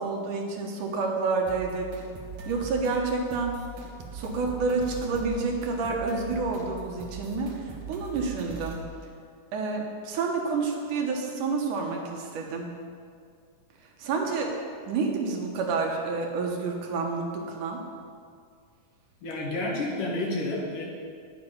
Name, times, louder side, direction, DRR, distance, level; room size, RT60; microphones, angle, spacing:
voice 1, 0.0-1.9 2.5-3.5 4.1-8.8 9.5-12.7 14.0-14.5 14.9-17.8, right 4 dB, 70° right, 1 dB, 2.5 m, -29 dB
sound 1, 1.5-8.9, right 2 dB, 55° right, 1.7 m, -41 dB
voice 2, 19.2-20.8, left 2 dB, 70° left, -2 dB, 3.1 m, -30 dB
10.0 x 8.0 x 5.4 m, 2.2 s
omnidirectional pair, 3.9 m